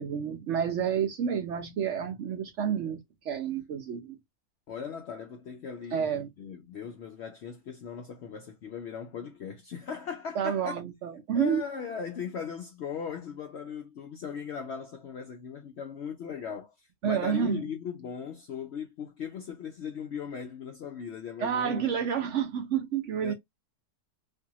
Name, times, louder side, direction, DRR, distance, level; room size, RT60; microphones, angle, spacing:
voice 1, 0.0-3.0 3.2-4.2 5.9-6.3 10.4-11.6 17.0-17.6 21.4-23.3, right 8 dB, 65° right, 0.8 m, -29 dB
voice 2, 4.7-10.8 11.3-21.9 22.2-22.3 23.2-23.3, left 7 dB, 75° left, 0.6 m, -38 dB
2.6 x 2.4 x 2.7 m
omnidirectional pair, 1.6 m